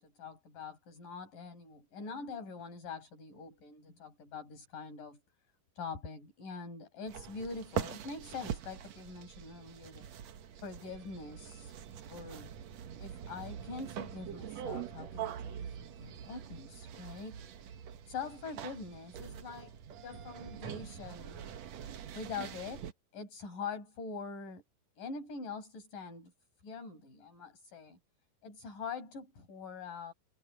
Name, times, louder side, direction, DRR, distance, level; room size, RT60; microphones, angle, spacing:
voice 1, 0.0-5.2 5.8-10.1 10.6-11.7 12.1-12.5 13.0-17.4 18.1-19.7 20.0-21.5 22.1-22.9 23.1-24.6 25.0-26.3 26.6-28.0 28.4-30.1, left 4 dB, 60° left, 7.4 m, -44 dB
sound 1, 7.1-22.9, right 9 dB, 60° right, 2.0 m, -44 dB
omnidirectional pair, 4.3 m